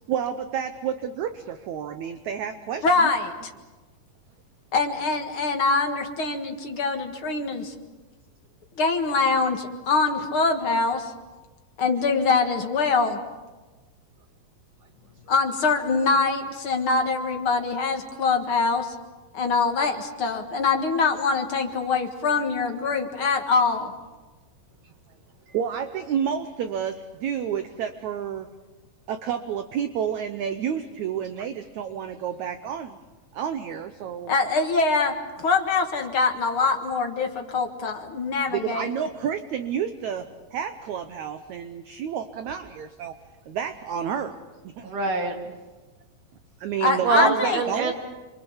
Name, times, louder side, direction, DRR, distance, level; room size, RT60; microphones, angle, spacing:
voice 1, 0.1-3.1 24.8-24.9 25.5-28.5 29.1-33.0 33.3-34.3 38.5-43.2 43.5-44.4 44.6-44.9 46.6-47.9, right 8 dB, 75° right, 9 dB, 1.7 m, -30 dB
voice 2, 2.8-3.3 4.7-7.7 8.8-11.1 11.8-13.2 15.3-18.9 19.3-23.9 34.3-38.9 46.8-47.6, left 4 dB, 50° left, 4 dB, 1.8 m, -24 dB
voice 3, 44.8-45.5 47.0-47.9, right 4 dB, 55° right, 2 dB, 4.2 m, -25 dB
28.5 x 24.0 x 7.3 m, 1.2 s
omnidirectional pair, 4.5 m